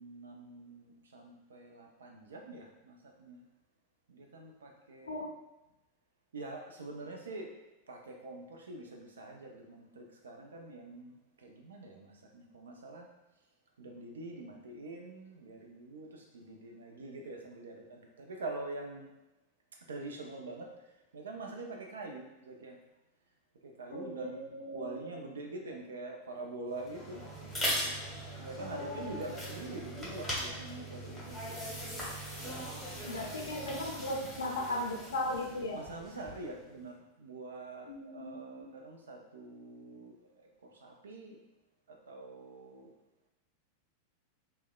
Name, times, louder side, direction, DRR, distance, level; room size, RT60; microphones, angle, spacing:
voice 1, 0.0-3.4 4.1-5.2 6.3-7.5 7.9-13.1 13.8-19.1 19.9-20.7 21.1-22.8 23.6-27.2 27.8-31.6 35.7-41.4 41.9-42.9, right 2 dB, 65° right, 1 dB, 0.4 m, -45 dB
voice 2, 5.1-5.4 23.9-25.2 28.6-29.2 33.0-35.9 37.9-38.6, left 1 dB, 70° left, 0 dB, 0.5 m, -38 dB
sound 1, 26.7-36.6, equal, 10° left, 0.9 m, -40 dB
3.3 x 2.1 x 2.2 m, 0.96 s
figure-of-eight pair, 90°, 0 cm